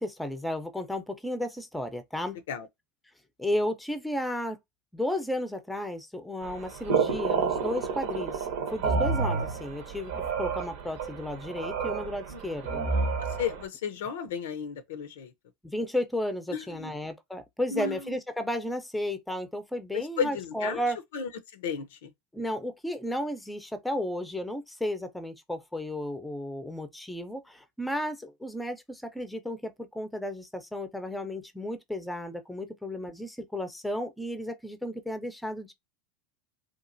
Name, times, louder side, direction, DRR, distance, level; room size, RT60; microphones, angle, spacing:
voice 1, 0.0-2.4 3.4-4.6 4.9-8.3 8.7-10.1 10.4-12.8 15.7-21.0 22.3-27.4 27.8-35.7, left 1 dB, 5° left, 0.6 m, -33 dB
sound 1, 6.4-13.6, right 5 dB, 65° right, 0.8 m, -30 dB
voice 2, 13.4-15.3 16.5-17.0 17.7-18.1 19.9-20.8 21.1-22.1, left 6 dB, 75° left, 0.5 m, -34 dB
2.9 x 2.4 x 2.5 m
hypercardioid pair, 100°, 0 cm